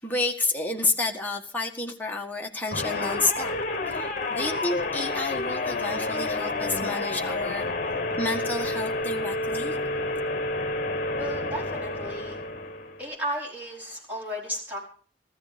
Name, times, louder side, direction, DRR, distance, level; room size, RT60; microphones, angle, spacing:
voice 1, 0.0-3.6 3.9-7.7 8.2-9.8 10.1-10.2, left 2 dB, 10° left, 0 dB, 1.7 m, -30 dB
sound 1, 2.7-13.1, left 2 dB, 45° left, 1.3 m, -29 dB
voice 2, 11.2-12.4 13.0-14.8, equal, 10° right, -3 dB, 5.0 m, -34 dB
15.0 x 13.5 x 5.2 m, 0.43 s
head